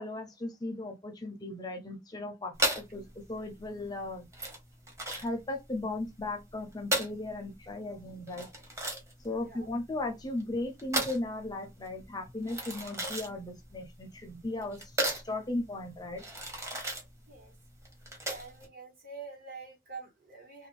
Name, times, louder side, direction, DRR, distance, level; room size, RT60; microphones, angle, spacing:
voice 1, 0.0-4.3 5.1-8.5 9.2-15.0 15.2-16.2, left 2 dB, 20° left, 0.5 m, -37 dB
sound 1, 2.5-18.7, right 1 dB, 15° right, 0.8 m, -36 dB
voice 2, 18.3-20.7, right 4 dB, 55° right, 1.2 m, -46 dB
2.5 x 2.1 x 3.0 m
head